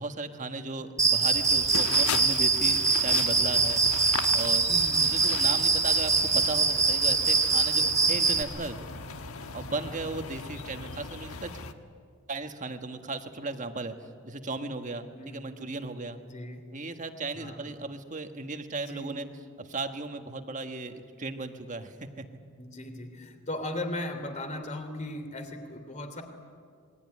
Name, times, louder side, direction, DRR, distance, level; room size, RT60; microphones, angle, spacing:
voice 1, 0.0-3.8 4.3-4.6 5.1-8.8 9.5-11.5 12.3-13.9 14.2-16.2 16.7-19.2 19.6-22.2, right 3 dB, 35° right, 7 dB, 1.5 m, -36 dB
Cricket, 1.0-8.4, right 4 dB, 15° right, 1.3 m, -24 dB
sound 1, 1.3-11.7, left 4 dB, 70° left, 1.3 m, -38 dB
voice 2, 4.7-5.0 9.7-10.0 15.1-15.5 16.2-16.7 17.3-17.7 18.7-19.2 22.6-26.2, left 1 dB, 30° left, 7 dB, 3.0 m, -38 dB
26.5 x 21.5 x 9.8 m, 2.2 s
head